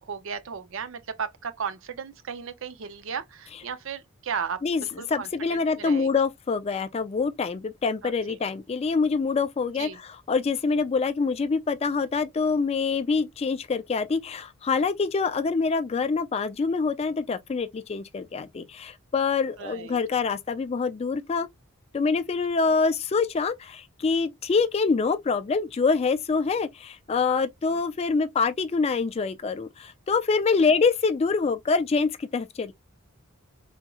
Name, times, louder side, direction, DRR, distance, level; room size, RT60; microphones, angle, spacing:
voice 1, 0.0-6.1 8.0-8.4 9.8-10.0 19.6-20.0 27.7-27.8 30.6-30.7, right 6 dB, 60° right, 0.5 m, -35 dB
voice 2, 5.1-21.5 21.9-32.7, left 4 dB, 30° left, 0.3 m, -25 dB
3.5 x 3.0 x 2.3 m
head